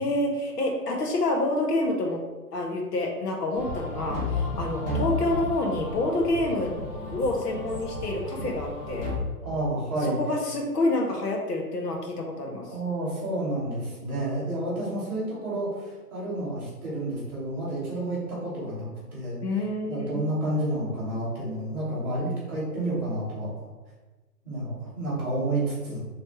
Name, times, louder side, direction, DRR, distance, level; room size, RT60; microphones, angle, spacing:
voice 1, 0.0-2.2 2.5-6.7 7.1-9.1 10.2-12.7 19.4-20.2, left 2 dB, 80° left, 1 dB, 1.2 m, -27 dB
sound 1, 3.5-9.2, left 2 dB, 35° left, 1.4 m, -33 dB
voice 2, 9.4-10.2 12.7-19.4 19.9-23.7 24.4-26.0, right 1 dB, 5° right, -14 dB, 1.1 m, -30 dB
4.6 x 3.2 x 3.0 m, 1.2 s
hypercardioid pair, 165°, 47 cm